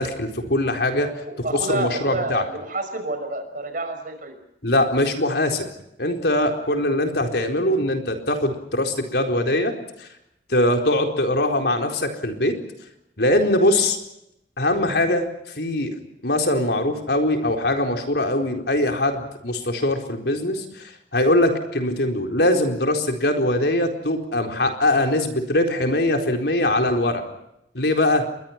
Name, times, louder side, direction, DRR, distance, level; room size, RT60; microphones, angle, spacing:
voice 1, 0.0-1.1 1.4-2.4 4.6-5.7 6.0-9.7 10.0-10.1 10.5-12.6 13.2-14.0 14.6-15.3 15.6-27.2 27.7-28.3, left 1 dB, 70° left, 4 dB, 4.3 m, -22 dB
voice 2, 1.2-4.3 10.6-10.8, right 2 dB, 50° right, 7 dB, 5.8 m, -29 dB
30.0 x 22.5 x 5.9 m, 0.82 s
head